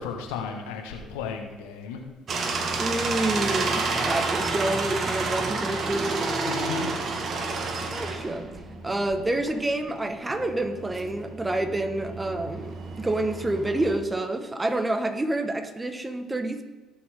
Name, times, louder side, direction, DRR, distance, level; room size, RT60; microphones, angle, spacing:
voice 1, 0.0-2.0 6.4-6.9, left 5 dB, 85° left, 3 dB, 1.6 m, -34 dB
sound 1, 2.3-14.0, right 3 dB, 50° right, 1.7 m, -30 dB
voice 2, 2.8-6.2 7.9-8.5 8.8-16.6, right 2 dB, 20° right, 8 dB, 1.5 m, -28 dB
18.0 x 7.1 x 3.8 m, 1.3 s
supercardioid pair, 65°, 0 cm